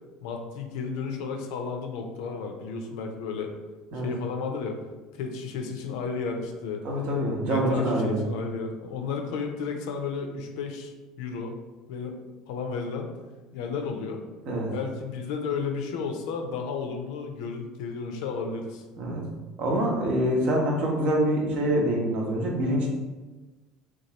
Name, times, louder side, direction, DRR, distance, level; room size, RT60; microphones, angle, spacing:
voice 1, 0.2-3.5 4.0-4.8 5.1-6.8 7.4-11.5 11.9-12.2 12.5-13.1 13.5-14.2 14.7-18.8, left 5 dB, 70° left, 3 dB, 0.4 m, -33 dB
voice 2, 6.8-8.2 14.4-14.7 19.0-19.2 19.6-22.9, equal, 55° right, -1 dB, 0.8 m, -25 dB
3.0 x 2.3 x 2.9 m, 1.2 s
hypercardioid pair, 70°, 3 cm